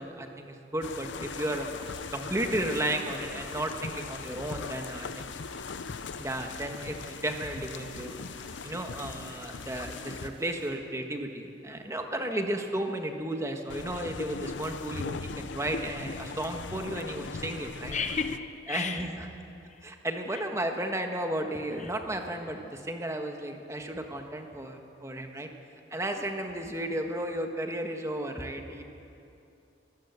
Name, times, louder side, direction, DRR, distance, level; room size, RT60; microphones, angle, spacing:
voice 1, 0.0-1.7 2.1-5.3 6.2-8.1 8.6-18.0 18.7-19.3 19.8-25.5 25.9-28.8, right 1 dB, 15° right, 4 dB, 1.5 m, -34 dB
sound 1, 0.8-10.3 13.7-18.4, left 4 dB, 80° left, 0.6 m, -39 dB
sound 2, 1.2-10.7, right 2 dB, 30° right, 4.0 m, -53 dB
voice 2, 17.9-19.0, left 5 dB, 40° left, 8 dB, 0.9 m, -33 dB
23.5 x 14.0 x 8.3 m, 2.7 s
head